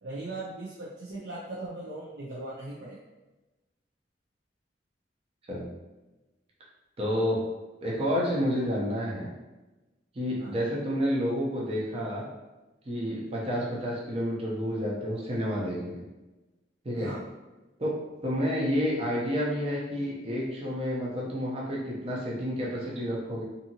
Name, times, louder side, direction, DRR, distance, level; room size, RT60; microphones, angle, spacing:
voice 1, 0.0-3.0 7.0-7.3 10.4-10.6 13.6-13.8 16.9-17.2, right 2 dB, 85° right, -7 dB, 0.5 m, -39 dB
voice 2, 7.0-7.4 7.8-9.3 10.1-12.2 12.9-16.0 16.8-17.1 17.8-17.9 18.2-23.4, equal, 35° right, -5 dB, 0.6 m, -29 dB
2.7 x 2.6 x 2.7 m, 1.1 s
head